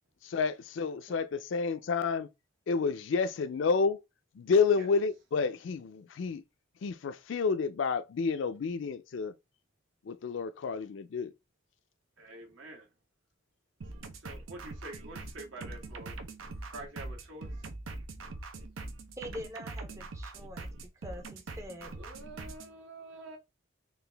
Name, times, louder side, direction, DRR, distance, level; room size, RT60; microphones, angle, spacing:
voice 1, 0.2-2.3 2.7-4.0 4.4-6.4 6.8-9.3 10.1-11.3, left 5 dB, 65° left, 0.4 m, -30 dB
voice 2, 12.2-12.9 14.2-16.2 16.7-17.5 21.9-23.4, right 2 dB, 75° right, 1.4 m, -47 dB
sound 1, 13.8-22.7, right 2 dB, 90° right, 0.7 m, -43 dB
voice 3, 19.2-20.7 21.0-21.9, equal, 15° right, 0.5 m, -44 dB
3.8 x 2.4 x 3.3 m
head